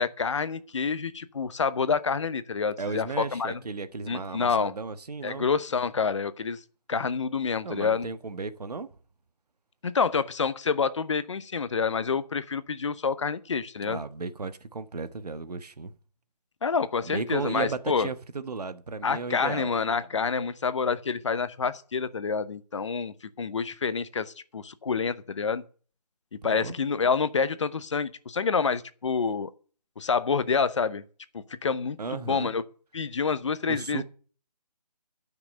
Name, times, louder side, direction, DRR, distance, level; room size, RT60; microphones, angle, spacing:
voice 1, 0.0-3.6 4.1-4.7 5.2-6.6 6.9-8.1 9.8-14.0 16.6-18.1 19.0-25.6 26.4-29.5 30.0-31.0 31.3-32.6 32.9-34.0, left 5 dB, 45° left, 0.9 m, -28 dB
voice 2, 2.8-5.5 7.6-8.9 13.8-15.9 17.0-19.7 26.5-26.7 32.0-32.5 33.7-34.0, right 4 dB, 70° right, 1.4 m, -35 dB
13.0 x 6.0 x 8.7 m
figure-of-eight pair, 165°, 21 cm